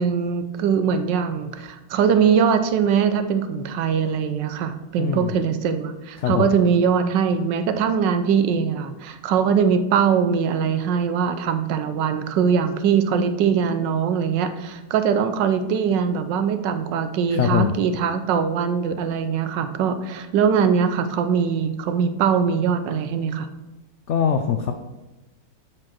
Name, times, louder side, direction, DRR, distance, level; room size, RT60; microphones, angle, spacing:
voice 1, 0.0-23.5, right 7 dB, 80° right, 10 dB, 1.4 m, -22 dB
voice 2, 5.0-5.4 6.2-6.5 17.3-17.7 24.1-24.7, left 8 dB, 80° left, 6 dB, 0.6 m, -22 dB
7.6 x 4.9 x 5.9 m, 1.0 s
omnidirectional pair, 1.9 m